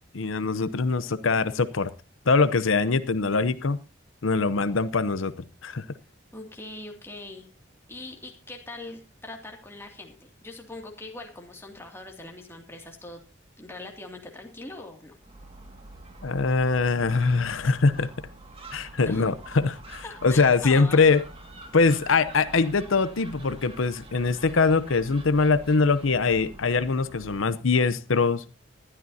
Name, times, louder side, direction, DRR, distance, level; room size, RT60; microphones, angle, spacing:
voice 1, 0.1-1.9 2.3-3.8 4.2-5.3 5.6-5.8 16.2-18.1 18.7-21.2 21.7-28.4, left 4 dB, 85° left, 13 dB, 0.8 m, -23 dB
voice 2, 6.3-7.5 7.9-13.2 13.6-15.1 19.0-19.3 20.0-21.0, left 2 dB, 10° left, 2 dB, 2.4 m, -41 dB
Gull seagull, 15.2-27.6, right 2 dB, 30° right, 2.0 m, -46 dB
20.0 x 12.5 x 2.8 m, 0.31 s
head